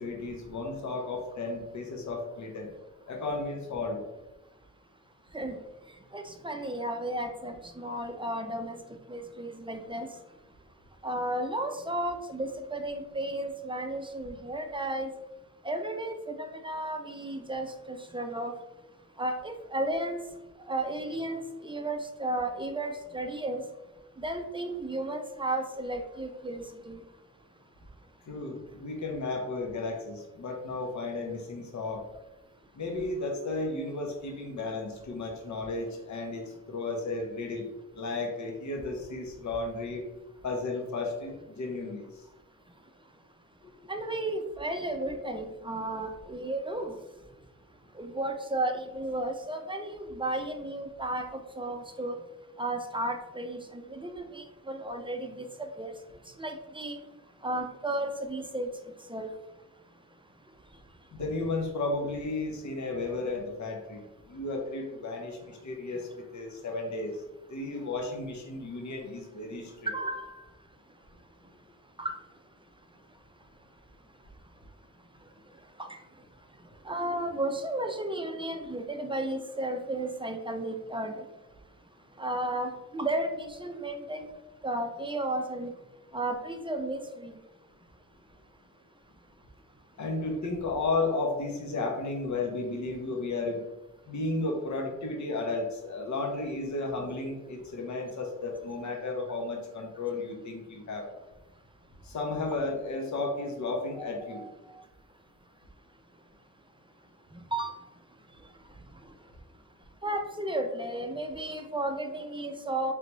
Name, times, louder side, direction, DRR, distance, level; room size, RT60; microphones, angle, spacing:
voice 1, 0.0-2.7 3.1-4.0 28.3-32.0 32.7-37.7 37.9-40.0 40.4-42.2 43.6-43.7 61.1-67.2 67.5-69.9 90.0-93.6 94.1-101.1 102.0-104.4, left 3 dB, 60° left, 1 dB, 0.8 m, -33 dB
voice 2, 6.1-10.1 11.0-15.1 15.6-18.5 19.2-20.2 20.7-23.6 24.2-27.0 43.9-47.0 48.0-52.2 52.6-55.9 56.4-57.0 57.4-58.7 59.1-59.3 69.9-70.4 72.0-72.2 75.8-76.0 76.8-81.2 82.2-84.3 84.6-85.7 86.1-87.4 104.3-104.5 107.3-107.7 110.0-112.9, right 1 dB, 15° right, 5 dB, 0.4 m, -33 dB
4.0 x 3.4 x 3.0 m, 1.0 s
wide cardioid pair, 110°, 32 cm